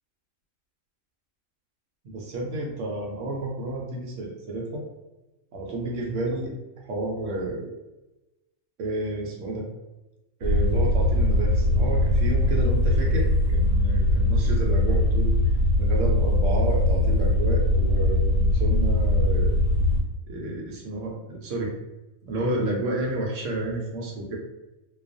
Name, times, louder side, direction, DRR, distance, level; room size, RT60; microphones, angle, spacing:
voice 1, 2.0-4.8 5.5-6.5 6.8-7.8 8.8-9.6 10.4-15.3 15.8-19.6 20.3-21.7 22.2-24.4, right 2 dB, 70° right, 0 dB, 0.9 m, -30 dB
sound 1, 10.4-20.0, left 1 dB, 70° left, 0.9 m, -21 dB
2.3 x 2.2 x 2.5 m, 1.0 s
omnidirectional pair, 1.5 m